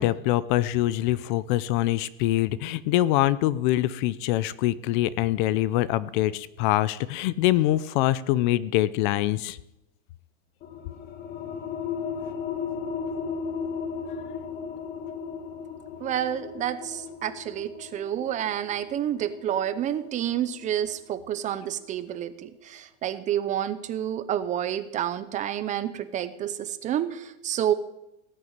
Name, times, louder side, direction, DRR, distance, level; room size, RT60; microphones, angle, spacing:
voice 1, 0.0-9.6, left 14 dB, 45° left, 19 dB, 0.6 m, -24 dB
sound 1, 10.6-21.8, left 6 dB, 30° left, 1.4 m, -36 dB
voice 2, 16.0-27.7, right 10 dB, 20° right, 13 dB, 0.6 m, -29 dB
18.0 x 6.8 x 8.8 m, 0.89 s
supercardioid pair, 160°, 34 cm